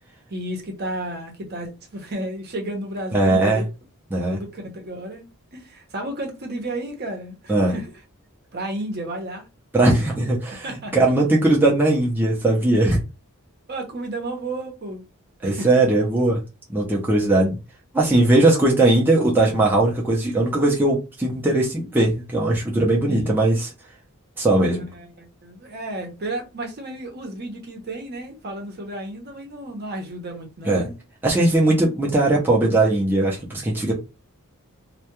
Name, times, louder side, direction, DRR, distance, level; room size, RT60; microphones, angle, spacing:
voice 1, 0.3-3.7 4.3-5.3 5.5-7.9 8.5-9.5 10.6-10.9 13.7-15.0 15.4-15.7 23.1-23.3 24.6-31.0, right 1 dB, 45° right, 0.7 m, -32 dB
voice 2, 3.1-3.6 4.1-4.4 7.5-7.7 9.7-10.7 10.9-13.0 15.4-16.4 16.7-17.6 17.9-23.7 24.4-24.9 30.6-30.9 31.2-33.9, right 2 dB, 10° right, 0.5 m, -19 dB
2.2 x 2.2 x 2.9 m
head